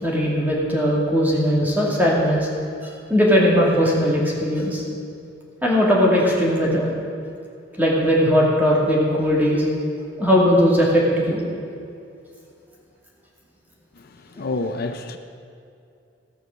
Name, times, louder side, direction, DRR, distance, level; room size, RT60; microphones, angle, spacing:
voice 1, 0.0-2.5 2.8-4.8 5.6-6.9 7.8-9.6 10.2-11.4, equal, 10° right, -4 dB, 2.3 m, -19 dB
voice 2, 14.0-15.2, left 2 dB, 55° left, 7 dB, 0.6 m, -29 dB
15.0 x 6.3 x 6.4 m, 2.5 s
head